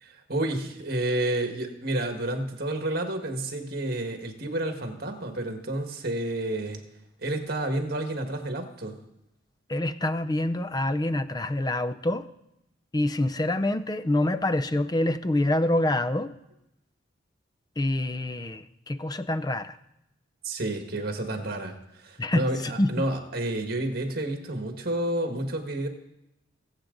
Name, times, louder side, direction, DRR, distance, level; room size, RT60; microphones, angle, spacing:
voice 1, 0.0-6.8 7.2-9.0 20.4-25.9, right 1 dB, 50° right, 1.7 m, -30 dB
voice 2, 9.7-12.3 12.9-16.4 17.8-19.8 22.2-22.5 22.8-22.9, left 1 dB, 20° left, 0.5 m, -26 dB
21.0 x 8.0 x 3.9 m
head